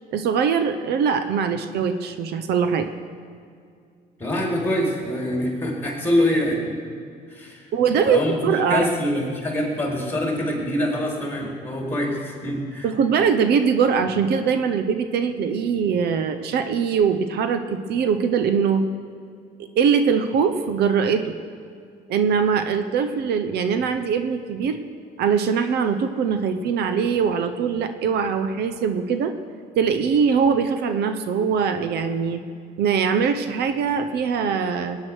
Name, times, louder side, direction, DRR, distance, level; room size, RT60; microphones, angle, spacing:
voice 1, 0.1-2.9 7.7-8.9 12.8-18.8 19.8-21.3 22.1-24.8 25.2-29.3 29.8-32.4 32.8-35.0, right 6 dB, 75° right, 9 dB, 1.0 m, -22 dB
voice 2, 4.2-6.8 7.3-7.7 8.0-8.4 8.7-12.9, left 1 dB, 10° left, -1 dB, 4.6 m, -25 dB
19.5 x 9.7 x 6.3 m, 2.3 s
cardioid pair, 110°, 17 cm